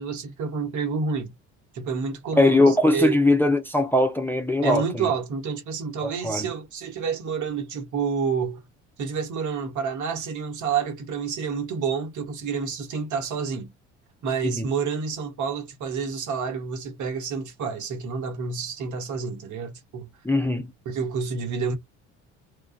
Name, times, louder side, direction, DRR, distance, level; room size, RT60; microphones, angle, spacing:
voice 1, 0.0-1.3 1.7-3.2 4.6-8.6 9.0-13.7 14.2-20.1 20.8-21.7, right 5 dB, 55° right, 1.1 m, -29 dB
voice 2, 2.4-5.1 6.0-6.5 14.4-14.7 20.2-20.7, left 1 dB, 5° left, 0.6 m, -21 dB
2.3 x 2.3 x 2.4 m
hypercardioid pair, 60°, 36 cm